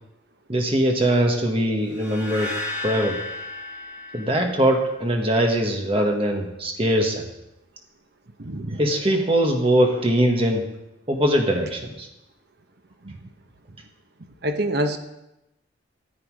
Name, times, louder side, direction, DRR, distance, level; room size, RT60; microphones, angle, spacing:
voice 1, 0.5-2.5 2.8-3.2 4.1-7.3 8.8-10.6 11.1-12.1, right 1 dB, 25° right, 2 dB, 1.6 m, -21 dB
sound 1, 1.9-5.1, left 2 dB, 10° right, 2.4 m, -34 dB
voice 2, 8.4-8.8 13.0-13.2 14.4-15.0, right 1 dB, 55° right, 7 dB, 1.0 m, -26 dB
14.0 x 8.5 x 4.9 m, 0.93 s
head